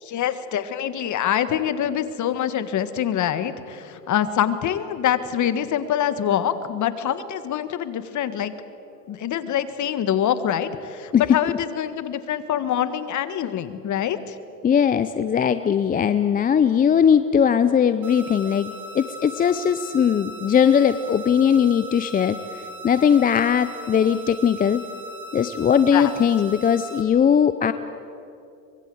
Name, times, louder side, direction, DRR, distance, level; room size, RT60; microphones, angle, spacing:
voice 1, 0.0-8.5 9.1-14.4 25.9-26.1, left 10 dB, 35° left, 12 dB, 1.7 m, -25 dB
voice 2, 14.6-22.4 22.8-24.8 25.3-27.7, left 8 dB, 20° left, 12 dB, 0.6 m, -19 dB
sound 1, 18.0-27.0, equal, 40° right, 4.8 m, -39 dB
24.5 x 22.0 x 8.0 m, 2.7 s
supercardioid pair, 110°, 48 cm